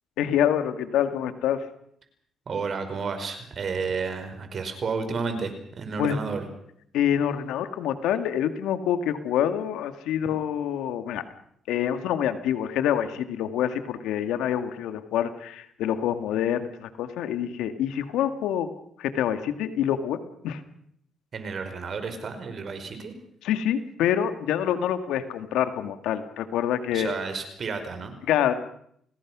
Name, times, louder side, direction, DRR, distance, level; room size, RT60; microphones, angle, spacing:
voice 1, 0.2-1.7 6.0-6.2 6.9-11.2 11.7-18.7 19.0-20.2 20.4-20.6 23.4-27.1 28.3-28.5, left 10 dB, 90° left, 9 dB, 2.1 m, -26 dB
voice 2, 2.5-6.5 21.3-23.1 26.9-28.2, right 5 dB, 50° right, 8 dB, 5.2 m, -31 dB
28.5 x 19.0 x 6.3 m, 0.68 s
cardioid pair, 90°, 0 cm